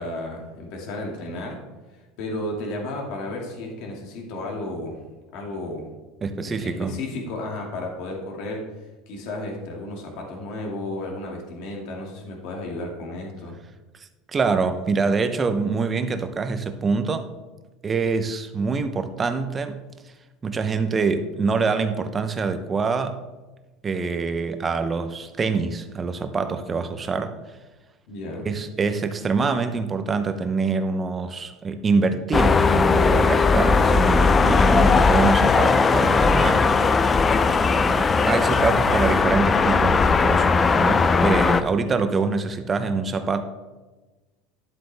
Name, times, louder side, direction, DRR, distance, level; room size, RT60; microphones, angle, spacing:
voice 1, 0.0-1.6 1.9-5.0 5.3-5.9 6.3-8.7 9.1-13.6 28.1-28.5, left 1 dB, 60° left, 0 dB, 2.4 m, -33 dB
voice 2, 6.2-6.9 14.3-17.3 17.8-19.8 20.4-23.2 23.8-27.4 28.4-36.7 37.6-43.4, right 4 dB, 20° right, 9 dB, 0.7 m, -25 dB
sound 1, 32.3-41.6, left 4 dB, 20° left, 0.4 m, -18 dB
12.0 x 7.8 x 3.4 m, 1.2 s
supercardioid pair, 140°, 0 cm